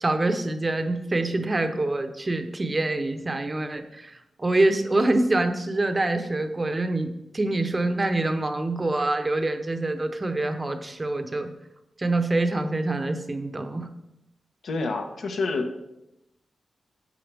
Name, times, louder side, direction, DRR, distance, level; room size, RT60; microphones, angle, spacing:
voice 1, 0.0-7.1 7.3-11.5 12.0-13.9, right 2 dB, 25° right, 7 dB, 0.8 m, -25 dB
voice 2, 14.6-15.8, left 3 dB, 75° left, 3 dB, 1.3 m, -28 dB
11.5 x 8.3 x 3.5 m, 0.88 s
wide cardioid pair, 135°, 0 cm